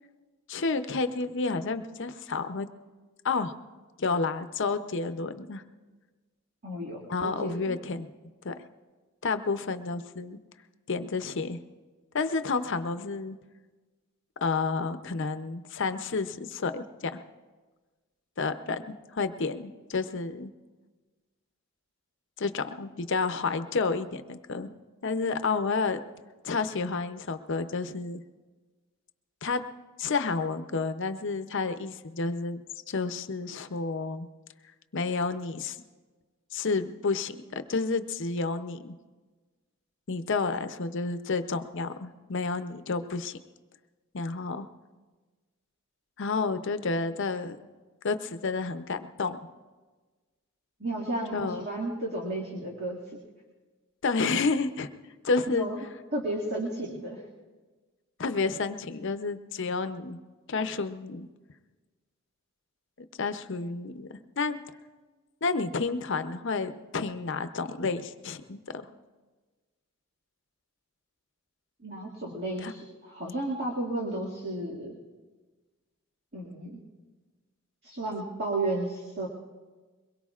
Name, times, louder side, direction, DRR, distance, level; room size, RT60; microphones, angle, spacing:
voice 1, 0.5-2.7 3.2-3.5 4.0-5.6 7.1-8.1 8.4-8.5 9.2-10.4 10.9-11.6 12.1-13.4 14.4-17.2 18.4-20.5 22.4-24.7 25.0-26.0 26.4-28.2 29.4-29.6 30.0-34.3 34.9-35.8 36.5-38.9 40.1-43.4 44.1-44.7 46.2-47.6 48.0-49.4 51.3-51.6 54.0-54.9 55.2-55.7 58.2-60.2 60.5-61.3 63.2-64.6 65.4-68.6 72.6-72.7, left 4 dB, 55° left, 9 dB, 0.6 m, -30 dB
voice 2, 6.6-7.8 50.8-53.0 55.5-55.8 56.1-57.2 71.8-75.0 76.3-76.8 77.8-79.3, right 2 dB, 50° right, -4 dB, 2.1 m, -33 dB
23.0 x 21.5 x 2.4 m, 1.3 s
head